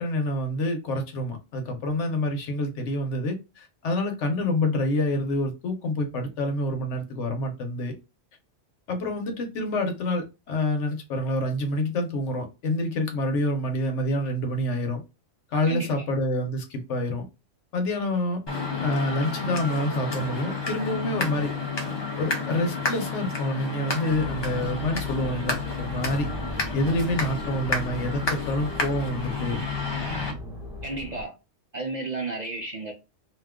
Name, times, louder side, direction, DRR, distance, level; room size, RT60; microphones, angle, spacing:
voice 1, 0.0-7.9 8.9-15.0 15.5-17.3 17.7-18.4 18.8-21.5 22.2-26.3 26.7-29.6, left 1 dB, 75° left, 1.1 m, -27 dB
voice 2, 15.7-16.1 30.8-31.4 31.7-32.9, right 3 dB, 55° right, 0.5 m, -32 dB
sound 1, 18.5-30.3, left 4 dB, 30° left, 0.5 m, -31 dB
sound 2, 24.1-31.2, left 1 dB, ahead, 0.8 m, -37 dB
2.6 x 2.2 x 3.5 m
omnidirectional pair, 1.3 m